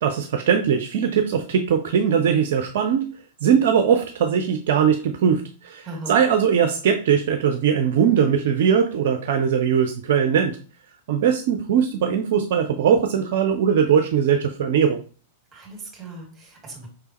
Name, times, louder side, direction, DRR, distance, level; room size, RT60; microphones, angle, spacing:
voice 1, 0.0-3.1 3.4-10.6 11.1-15.0, right 7 dB, 55° right, 5 dB, 0.4 m, -20 dB
voice 2, 5.8-6.2 15.5-16.9, right 2 dB, 20° right, 0 dB, 2.1 m, -38 dB
4.8 x 3.3 x 3.0 m, 0.38 s
figure-of-eight pair, 95°, 0 cm